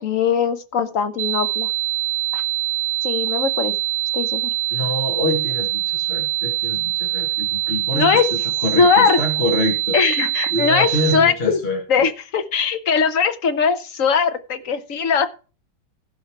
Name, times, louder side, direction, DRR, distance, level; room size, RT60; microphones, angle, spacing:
voice 1, 0.0-1.7 2.3-2.4 3.0-3.7 4.1-4.5 7.9-8.3 8.7-9.2 9.9-11.6 11.9-15.3, left 6 dB, 50° left, 10 dB, 1.2 m, -20 dB
sound 1, 1.2-11.2, right 15 dB, 55° right, 0.9 m, -24 dB
voice 2, 4.7-8.2 8.6-10.0 10.5-12.0, left 1 dB, 35° left, 1 dB, 2.0 m, -25 dB
16.0 x 5.4 x 4.7 m, 0.34 s
omnidirectional pair, 2.0 m